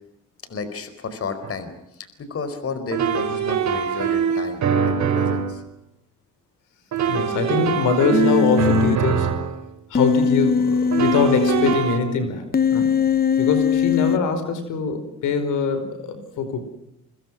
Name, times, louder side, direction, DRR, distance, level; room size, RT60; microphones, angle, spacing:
voice 1, 0.4-5.6, left 4 dB, 50° left, 11 dB, 4.4 m, -32 dB
sound 1, 1.4-1.6 2.9-5.6 6.9-9.6 10.9-12.0, right 7 dB, 65° right, 4.5 m, -23 dB
voice 2, 7.1-9.3 9.9-12.9 13.4-16.6, left 4 dB, 90° left, 9 dB, 5.0 m, -23 dB
Human voice, 8.1-9.0 9.9-11.7 12.5-14.2, left 6 dB, 30° left, 1.1 m, -20 dB
28.5 x 25.5 x 6.3 m, 0.80 s
cardioid pair, 90°, 30 cm